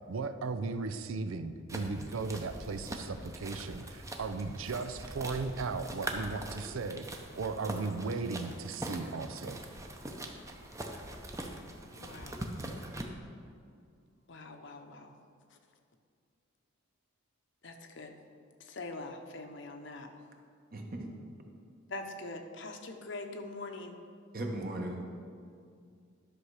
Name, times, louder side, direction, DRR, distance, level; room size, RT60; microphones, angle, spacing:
voice 1, 0.1-7.1 7.3-9.6, right 4 dB, 80° right, 10 dB, 0.5 m, -36 dB
sound 1, 1.7-13.0, right 1 dB, 15° right, 0.7 m, -42 dB
voice 2, 12.0-12.4 14.3-15.1 17.6-18.1 18.6-20.1 21.9-24.0, left 2 dB, 60° left, 5 dB, 0.9 m, -43 dB
voice 3, 20.7-21.1 24.3-25.0, right 1 dB, 45° right, 1 dB, 1.2 m, -37 dB
11.5 x 6.5 x 4.8 m, 2.3 s
head